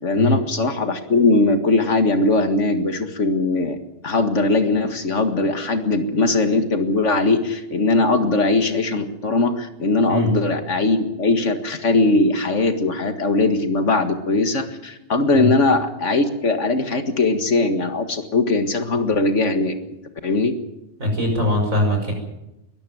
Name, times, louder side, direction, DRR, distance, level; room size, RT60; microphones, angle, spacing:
voice 1, 0.0-3.8 4.0-19.8 20.2-20.5, left 2 dB, 60° left, 7 dB, 2.2 m, -20 dB
voice 2, 21.0-22.1, left 1 dB, 75° right, 3 dB, 6.4 m, -21 dB
22.0 x 13.5 x 9.4 m, 0.94 s
omnidirectional pair, 1.4 m